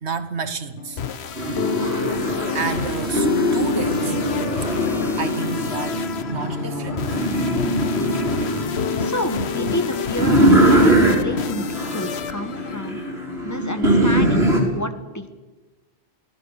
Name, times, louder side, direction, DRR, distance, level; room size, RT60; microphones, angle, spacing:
voice 1, 0.0-1.0 1.8-2.0 2.5-4.1 5.2-7.1 10.6-10.7, right 5 dB, 85° right, 1.7 m, -30 dB
sound 1, 0.8-13.6, left 7 dB, 75° left, 1.2 m, -28 dB
sound 2, 1.4-14.6, right 1 dB, 70° right, 5.1 m, -22 dB
voice 2, 9.0-13.0 13.4-14.5 14.7-15.3, equal, 15° left, 1.8 m, -29 dB
28.5 x 18.0 x 6.8 m
omnidirectional pair, 1.1 m